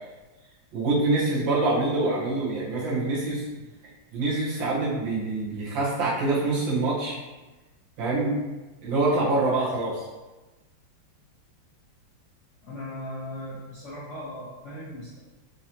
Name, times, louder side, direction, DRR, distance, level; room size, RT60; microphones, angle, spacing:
voice 1, 0.7-3.5 4.1-7.2 8.0-8.3 8.8-10.0, right 2 dB, 75° right, -6 dB, 1.8 m, -25 dB
voice 2, 12.6-15.2, left 1 dB, 65° left, -8 dB, 0.7 m, -38 dB
4.8 x 2.7 x 2.9 m, 1.2 s
omnidirectional pair, 2.1 m